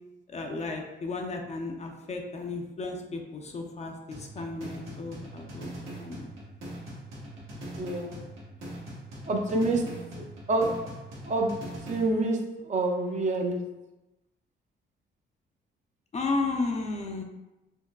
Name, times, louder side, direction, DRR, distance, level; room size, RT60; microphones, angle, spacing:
voice 1, 0.3-5.7 5.9-6.3 16.1-17.2, left 3 dB, 35° left, 3 dB, 0.5 m, -33 dB
sound 1, 4.1-12.1, right 1 dB, 90° right, 1.0 m, -41 dB
voice 2, 7.8-8.2 9.3-10.9 11.2-13.6, right 2 dB, 40° right, 2 dB, 0.5 m, -28 dB
3.5 x 3.0 x 2.2 m, 1.0 s
cardioid pair, 90°, 20 cm